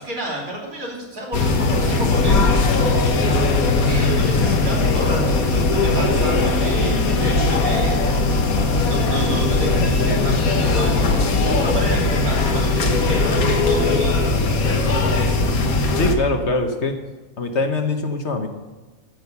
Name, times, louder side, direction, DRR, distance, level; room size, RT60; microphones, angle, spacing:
voice 1, 0.0-2.4 3.8-8.0 8.3-15.4, right 1 dB, 75° right, -3 dB, 3.5 m, -30 dB
sound 1, 1.3-16.1, left 3 dB, 75° left, 1.6 m, -19 dB
voice 2, 16.0-17.0 17.4-18.5, left 2 dB, 55° left, 6 dB, 1.3 m, -22 dB
14.0 x 6.3 x 6.9 m, 1.2 s
omnidirectional pair, 1.5 m